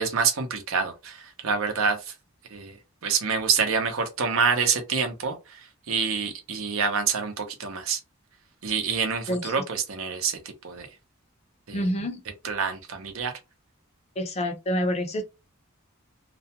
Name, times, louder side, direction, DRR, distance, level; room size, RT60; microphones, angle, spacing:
voice 1, 0.0-2.1 2.5-2.8 3.0-8.0 8.6-10.9 11.7-11.9 12.4-13.3, right 5 dB, 75° right, 0.7 m, -27 dB
voice 2, 9.3-9.6 11.7-12.2 14.2-15.2, equal, 30° left, 0.5 m, -27 dB
2.4 x 2.1 x 2.8 m
head